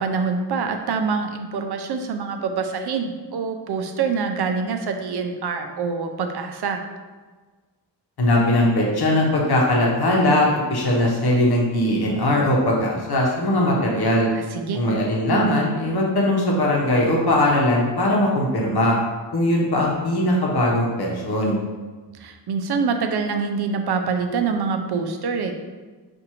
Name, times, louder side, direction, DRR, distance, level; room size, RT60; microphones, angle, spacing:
voice 1, 0.0-6.8 14.3-14.8 22.2-25.5, right 5 dB, 60° right, 5 dB, 0.6 m, -25 dB
voice 2, 8.2-14.3 14.7-19.0 19.3-21.6, left 1 dB, 60° left, -2 dB, 1.0 m, -20 dB
5.9 x 2.6 x 2.9 m, 1.3 s
cardioid pair, 95°, 44 cm